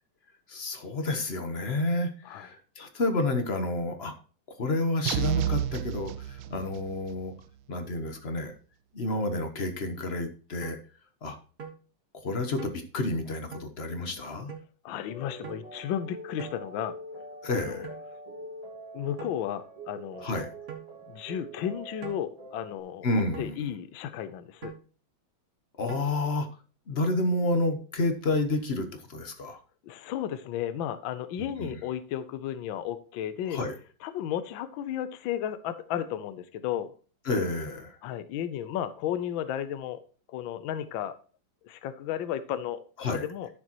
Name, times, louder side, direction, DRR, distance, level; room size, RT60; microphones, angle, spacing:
voice 1, 0.5-4.1 4.6-7.3 7.7-8.5 8.9-10.8 11.2-11.4 12.2-14.5 17.4-17.9 20.2-20.5 23.0-23.7 25.8-26.5 26.9-29.6 31.4-31.8 33.5-33.7 37.3-38.0 43.0-43.3, left 2 dB, 40° left, 7 dB, 1.0 m, -30 dB
sound 1, 5.1-7.0, right 10 dB, 75° right, 1.4 m, -30 dB
sound 2, 10.6-10.8 11.6-11.8 12.6-12.8 13.5-13.7 14.5-14.7 15.4-15.6 16.4-16.6 17.8-18.0 19.2-19.4 20.7-20.9 22.0-22.2 23.3-23.5 24.6-24.8 25.9-26.0, right 7 dB, 45° right, 1.7 m, -42 dB
voice 2, 14.8-16.9 17.5-17.9 18.9-20.3 21.1-23.1 23.4-24.7 29.8-33.6 34.0-36.9 38.0-40.0 40.3-41.2 41.6-43.5, left 10 dB, 70° left, 12 dB, 1.4 m, -34 dB
sound 3, 15.1-22.8, right 1 dB, 20° right, 1.9 m, -44 dB
12.0 x 6.6 x 2.9 m, 0.37 s
omnidirectional pair, 2.3 m